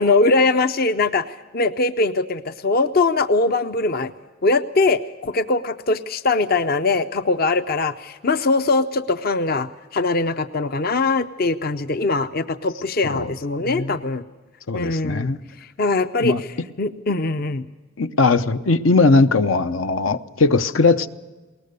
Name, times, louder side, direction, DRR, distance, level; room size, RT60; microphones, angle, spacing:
voice 1, 0.0-4.1 4.4-14.2 14.7-15.3 15.6-16.5 16.8-17.7, left 3 dB, 50° left, 11 dB, 0.6 m, -21 dB
voice 2, 13.6-14.0 14.7-15.4 16.2-16.4 18.0-21.1, left 3 dB, 85° left, 11 dB, 0.8 m, -19 dB
21.0 x 19.0 x 6.7 m, 1.3 s
head